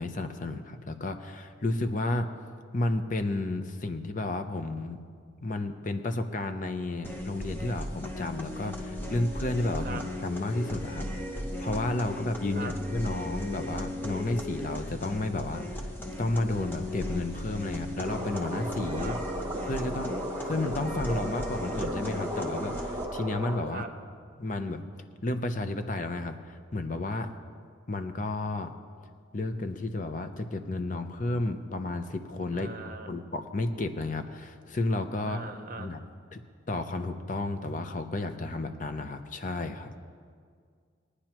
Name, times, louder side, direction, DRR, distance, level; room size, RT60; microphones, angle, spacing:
voice 1, 0.0-2.3 2.7-5.0 5.4-11.1 11.6-15.9 16.2-19.2 19.6-20.1 20.4-23.8 24.4-24.8 25.2-27.3 27.9-28.7 29.3-32.7 33.1-35.4 35.8-36.0 36.3-36.4 36.7-39.9, left 2 dB, 40° left, 8 dB, 0.6 m, -32 dB
sound 1, 7.0-23.0, left 1 dB, 10° left, 0.8 m, -37 dB
sound 2, 18.0-23.6, equal, 20° right, 1.2 m, -35 dB
voice 2, 32.5-33.1 35.2-36.0, right 3 dB, 45° right, 6 dB, 0.8 m, -39 dB
21.0 x 9.8 x 3.0 m, 2.1 s
head